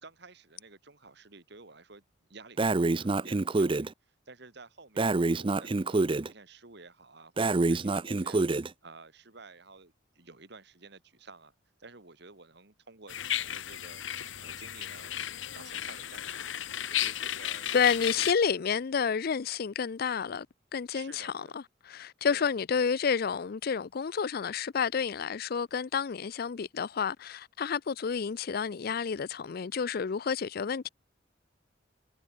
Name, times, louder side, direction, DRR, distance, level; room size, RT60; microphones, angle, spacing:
voice 1, 0.0-2.0 2.3-11.5 11.8-14.0 14.4-15.1 15.5-16.6 16.9-17.8 18.2-18.3 20.9-21.6 22.3-22.5, right 3 dB, 60° right, 2.5 m, -52 dB
Breathing, 2.6-3.9 5.0-6.3 7.4-8.7, right 3 dB, 25° right, 0.5 m, -27 dB
sound 1, 13.1-18.3, left 11 dB, 80° left, 1.0 m, -34 dB
voice 2, 17.7-20.5 20.7-30.9, left 6 dB, 50° left, 0.4 m, -30 dB
head